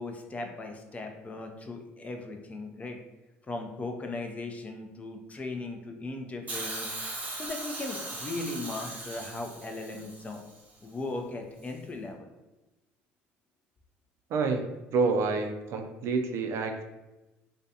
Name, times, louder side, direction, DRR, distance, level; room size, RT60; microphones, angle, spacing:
voice 1, 0.0-3.0 3.5-6.9 7.3-10.4 10.8-12.3, left 2 dB, 25° left, 3 dB, 0.4 m, -38 dB
Hiss, 6.5-10.6 11.6-11.7, right 2 dB, 30° right, 0.8 m, -39 dB
voice 2, 14.3-16.8, right 4 dB, 60° right, 6 dB, 0.4 m, -28 dB
2.4 x 2.2 x 2.7 m, 1.0 s
supercardioid pair, 80°, 5 cm